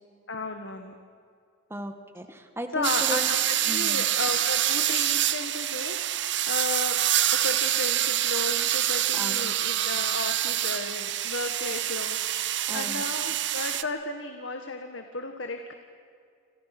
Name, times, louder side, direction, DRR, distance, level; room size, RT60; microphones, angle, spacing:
voice 1, 0.3-0.9 2.7-7.0 7.3-15.7, left 3 dB, 75° left, 5 dB, 1.8 m, -34 dB
voice 2, 1.7-3.3 3.7-4.0 9.1-9.5 12.7-13.0, equal, 10° right, 6 dB, 1.9 m, -36 dB
sound 1, 2.8-13.8, right 12 dB, 65° right, 1.0 m, -26 dB
30.0 x 27.0 x 6.2 m, 2.4 s
head